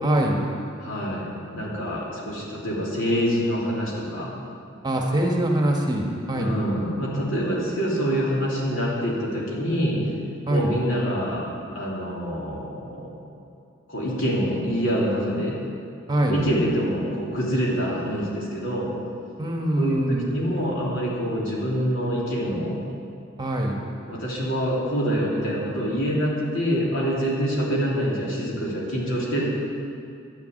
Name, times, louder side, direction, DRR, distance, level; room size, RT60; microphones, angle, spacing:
voice 1, 0.0-0.4 4.8-6.6 10.5-10.7 16.1-16.4 19.4-20.3 23.4-23.8, right 1 dB, 20° right, 0 dB, 1.3 m, -23 dB
voice 2, 0.8-4.3 6.3-10.0 10.5-11.4 11.7-13.2 13.9-15.6 16.3-18.9 19.8-22.8 24.1-29.4, equal, 70° left, -5 dB, 3.2 m, -26 dB
11.5 x 7.1 x 9.2 m, 2.5 s
head